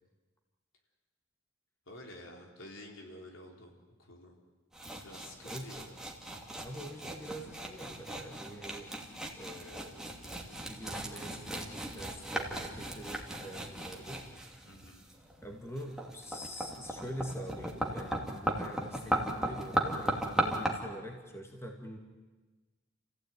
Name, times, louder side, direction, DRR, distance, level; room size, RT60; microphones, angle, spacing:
voice 1, 1.9-3.7 4.0-4.4 5.0-6.0 14.7-15.0, left 1 dB, 70° left, 1 dB, 4.2 m, -50 dB
Mortar and Pestle, 4.7-20.7, right 1 dB, 5° right, 2.6 m, -37 dB
voice 2, 5.4-5.9 6.6-8.9 9.3-10.0 10.4-14.2 15.4-22.0, equal, 15° left, 2 dB, 2.3 m, -45 dB
29.0 x 15.5 x 9.3 m, 1.3 s
head